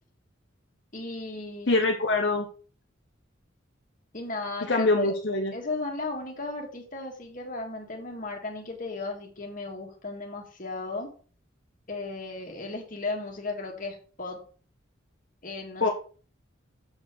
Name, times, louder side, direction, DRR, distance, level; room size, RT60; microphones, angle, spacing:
voice 1, 0.9-1.7 4.1-5.1 5.5-11.1 11.9-14.4 15.4-15.9, left 3 dB, 40° left, 1 dB, 2.0 m, -35 dB
voice 2, 1.7-2.5 4.6-5.5 15.8-15.9, left 2 dB, 55° left, 2 dB, 0.9 m, -24 dB
7.3 x 4.4 x 6.2 m, 0.40 s
head